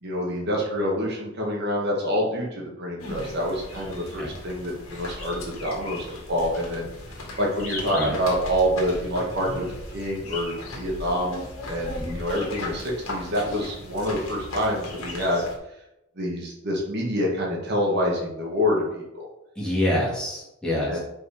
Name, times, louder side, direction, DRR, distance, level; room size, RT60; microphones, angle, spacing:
voice 1, 0.0-6.9 7.4-9.7 9.9-11.4 11.6-15.5 16.2-19.3 20.9-21.0, equal, 55° right, -2 dB, 1.8 m, -27 dB
sound 1, 3.0-15.6, left 2 dB, 85° left, 1.8 m, -37 dB
voice 2, 19.6-21.0, left 1 dB, 5° left, -6 dB, 2.3 m, -26 dB
5.6 x 4.7 x 5.0 m, 0.88 s
head